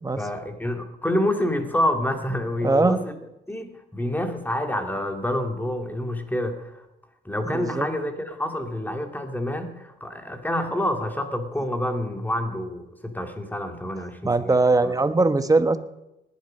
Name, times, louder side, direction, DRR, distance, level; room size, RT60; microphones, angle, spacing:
voice 1, 0.2-3.1 3.5-6.8 7.2-14.6 14.8-15.0, left 1 dB, 10° left, 5 dB, 2.2 m, -28 dB
voice 2, 2.6-3.0 7.5-7.9 14.2-15.8, right 3 dB, 15° right, 11 dB, 1.1 m, -20 dB
19.0 x 11.0 x 5.5 m, 0.90 s
cardioid pair, 90°, 20 cm